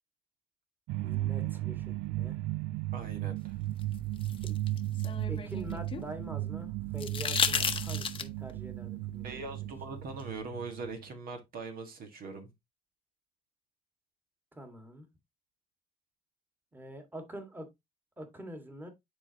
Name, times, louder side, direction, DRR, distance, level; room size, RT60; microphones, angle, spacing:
sound 1, 0.9-11.1, right 15 dB, 90° right, 0.4 m, -35 dB
voice 1, 1.0-2.4 4.5-4.6 5.3-9.5 14.5-15.1 16.7-17.7 18.2-18.9, right 1 dB, 10° right, 1.8 m, -45 dB
voice 2, 2.9-3.6 9.2-12.5, right 3 dB, 60° right, 1.8 m, -41 dB
sound 2, 3.8-6.1 7.0-8.5 10.2-10.3, left 6 dB, 30° left, 0.9 m, -33 dB
9.8 x 4.1 x 2.9 m
cardioid pair, 110°, 17 cm